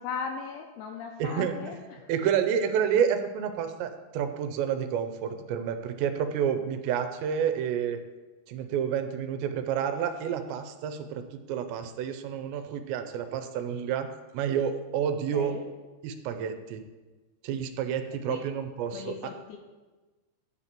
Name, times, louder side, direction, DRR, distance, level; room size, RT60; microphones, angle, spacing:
voice 1, 0.0-2.1 15.3-15.6 18.3-18.4 18.9-19.6, left 6 dB, 85° left, 4 dB, 2.3 m, -37 dB
voice 2, 1.2-1.6 2.1-8.0 8.5-11.2 11.5-14.1 14.3-15.6 16.0-16.8 17.4-19.1, right 8 dB, 85° right, 8 dB, 2.9 m, -29 dB
10.0 x 4.2 x 7.4 m, 1.2 s
omnidirectional pair, 5.1 m